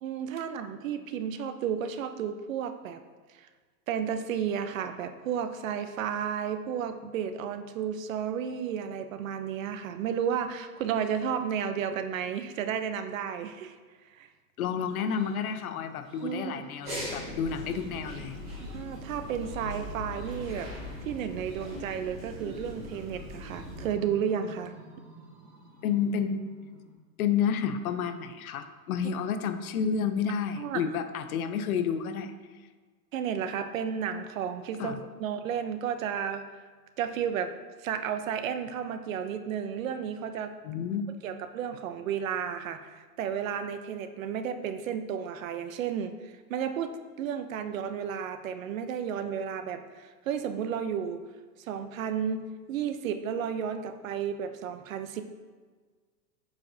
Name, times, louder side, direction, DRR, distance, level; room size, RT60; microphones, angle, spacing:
voice 1, 0.0-3.0 3.3-3.5 3.9-13.8 14.1-14.3 16.2-16.6 18.6-20.7 21.0-24.7 30.6-30.8 33.1-36.6 37.0-37.5 37.8-40.5 41.2-51.2 51.6-55.2, right 8 dB, 55° right, 9 dB, 0.5 m, -32 dB
voice 2, 14.6-18.4 25.8-26.5 27.2-32.3 34.8-35.0 40.6-41.0, left 7 dB, 60° left, 9 dB, 0.6 m, -30 dB
sound 1, 14.9-26.9, right 2 dB, 20° right, 1.2 m, -53 dB
sound 2, 16.8-23.9, left 1 dB, 5° right, 0.4 m, -40 dB
8.3 x 4.9 x 2.6 m, 1.4 s
supercardioid pair, 160°, 49 cm